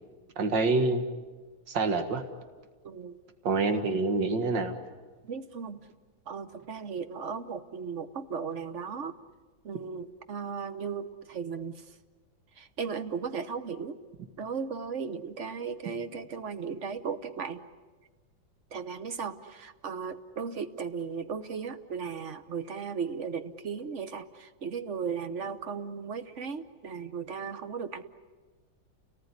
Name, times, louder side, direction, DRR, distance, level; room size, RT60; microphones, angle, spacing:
voice 1, 0.4-1.0 1.7-2.2 3.4-4.8, right 3 dB, 65° right, 7 dB, 2.4 m, -26 dB
voice 2, 2.8-3.2 5.2-5.8 6.3-9.1 9.6-11.8 12.6-14.0 14.4-17.6 18.7-28.0, right 6 dB, 45° right, 10 dB, 1.2 m, -36 dB
29.5 x 19.0 x 9.8 m, 1.4 s
omnidirectional pair, 2.1 m